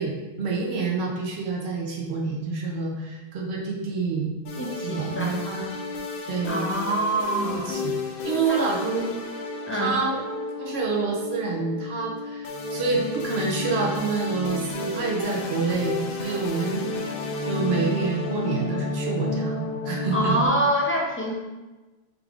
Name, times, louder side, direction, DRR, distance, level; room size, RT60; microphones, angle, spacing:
voice 1, 0.0-4.3 4.8-5.7 6.3-6.7 7.4-8.0 8.2-9.1 9.7-10.2 10.6-16.9 17.4-20.3, right 4 dB, 85° right, -1 dB, 1.0 m, -28 dB
sound 1, 4.4-20.5, left 2 dB, 65° left, 0.7 m, -31 dB
voice 2, 4.6-5.4 6.5-7.8 8.5-8.7 9.7-10.0 20.1-21.3, right 1 dB, 15° left, -2 dB, 0.5 m, -25 dB
5.0 x 3.4 x 2.4 m, 1.2 s
omnidirectional pair, 1.0 m